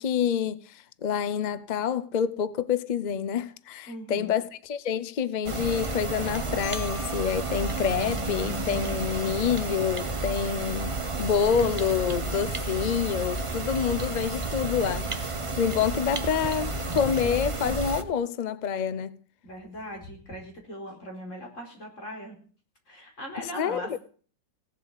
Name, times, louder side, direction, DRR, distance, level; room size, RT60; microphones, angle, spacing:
voice 1, 0.0-15.3 15.6-19.2 23.5-24.0, left 7 dB, 80° left, 0.4 m, -27 dB
voice 2, 3.9-4.4 19.4-22.4 22.9-24.0, equal, 45° left, 4.9 m, -40 dB
sound 1, 5.4-18.0, right 2 dB, 25° right, 0.9 m, -31 dB
Marimba xylophone, 6.6-9.5, left 5 dB, 65° left, 7.7 m, -45 dB
17.0 x 7.9 x 8.1 m
omnidirectional pair, 1.9 m